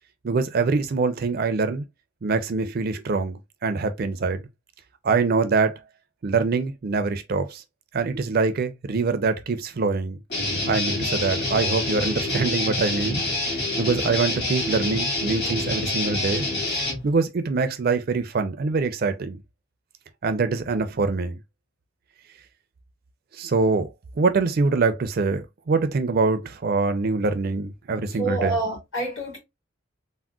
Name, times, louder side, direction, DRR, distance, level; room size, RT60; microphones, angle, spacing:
voice 1, 0.2-1.8 2.2-4.4 5.0-5.8 6.2-7.6 7.9-10.2 10.7-13.2 13.8-16.4 17.0-19.4 20.2-21.4 23.3-23.9 24.2-28.6, right 4 dB, 45° right, 0.4 m, -24 dB
Guitar, 10.3-17.0, left 2 dB, 55° left, 1.8 m, -27 dB
voice 2, 28.1-29.4, right 2 dB, 70° left, 2.1 m, -28 dB
3.6 x 2.1 x 2.2 m
head